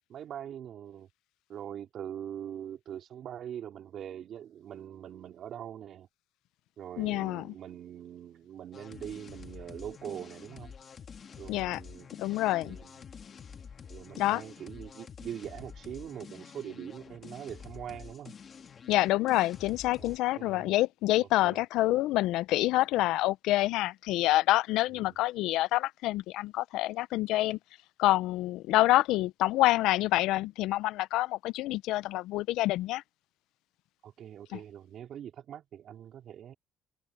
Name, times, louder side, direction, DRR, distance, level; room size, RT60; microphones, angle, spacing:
voice 1, 0.1-1.1 1.5-6.1 6.8-10.7 11.4-12.1 12.6-13.1 13.9-18.3 20.0-20.7 21.4-21.6 24.9-25.2 34.0-36.5, right 10 dB, 60° right, 3.8 m, -43 dB
voice 2, 7.0-7.5 11.5-11.8 12.2-12.8 14.2-14.4 18.9-27.6 28.0-33.0 34.5-34.6, left 16 dB, 80° left, 0.4 m, -27 dB
sound 1, 8.7-20.2, left 6 dB, 40° left, 1.5 m, -48 dB
open air
cardioid pair, 105°, 0 cm